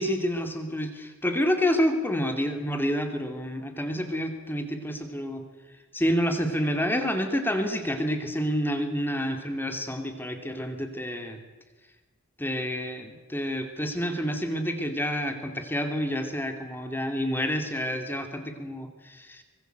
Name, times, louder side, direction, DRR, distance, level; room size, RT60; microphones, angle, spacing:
voice 1, 0.0-5.4 5.9-11.4 12.4-19.4, equal, 10° left, 6 dB, 2.7 m, -28 dB
24.5 x 22.0 x 8.0 m, 1.2 s
head